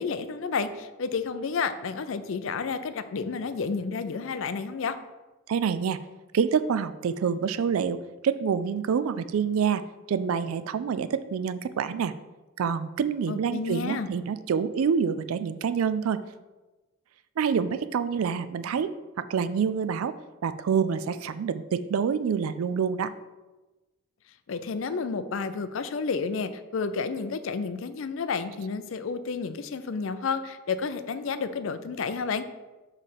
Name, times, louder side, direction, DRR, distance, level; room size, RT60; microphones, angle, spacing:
voice 1, 0.0-5.0 13.3-14.1 24.5-32.5, left 5 dB, 65° left, 11 dB, 0.4 m, -31 dB
voice 2, 5.5-6.0 6.3-9.8 10.1-12.1 12.6-16.2 17.4-18.9 19.2-20.1 20.4-23.1, right 6 dB, 85° right, 13 dB, 0.4 m, -27 dB
7.5 x 3.2 x 5.7 m, 1.2 s
head